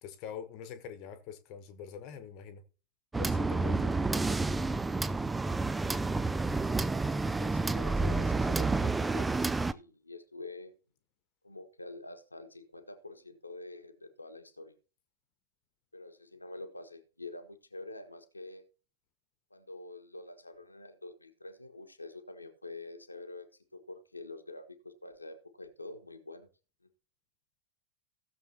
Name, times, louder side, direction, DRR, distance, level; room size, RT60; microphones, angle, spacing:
voice 1, 0.0-2.6 3.2-4.4 5.2-5.3, left 7 dB, 40° left, 1.2 m, -44 dB
sound 1, 3.1-9.7, right 3 dB, 10° right, 0.5 m, -29 dB
voice 2, 7.4-10.7 11.4-14.7 15.9-18.6 19.5-26.5, left 2 dB, 85° left, 1.3 m, -47 dB
16.5 x 7.1 x 2.9 m
figure-of-eight pair, 90°, 0 cm